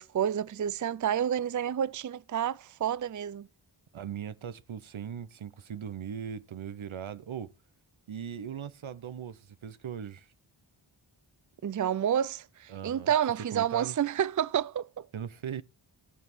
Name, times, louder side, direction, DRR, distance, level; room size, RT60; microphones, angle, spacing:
voice 1, 0.0-3.5 11.6-15.1, right 9 dB, 40° right, 0.5 m, -29 dB
voice 2, 3.9-7.5 8.1-10.3 12.7-13.9 15.1-15.6, right 8 dB, 80° right, 0.9 m, -39 dB
15.5 x 5.4 x 6.0 m
cardioid pair, 45°, 47 cm